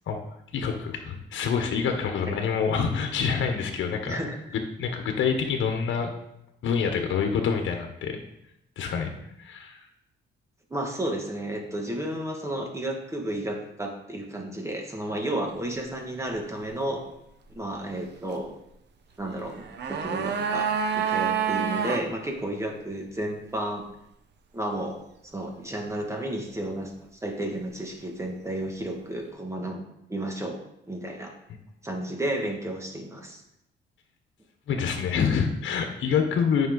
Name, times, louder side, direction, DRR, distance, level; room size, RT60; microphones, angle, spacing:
voice 1, 0.5-4.2 4.8-6.1 6.6-8.2 8.8-9.1 9.4-9.8 31.5-31.6 34.7-36.7, left 6 dB, 70° left, 5 dB, 1.2 m, -26 dB
voice 2, 4.0-4.4 10.7-17.0 17.5-18.5 19.2-23.8 24.5-25.0 25.3-26.9 27.2-29.8 30.1-30.6 30.9-31.3 31.8-33.4, right 1 dB, 15° right, 1 dB, 1.9 m, -32 dB
sound 1, 19.5-22.1 22.3-22.4, right 7 dB, 60° right, 1.0 m, -27 dB
9.2 x 5.6 x 4.0 m, 0.80 s
cardioid pair, 90°, 20 cm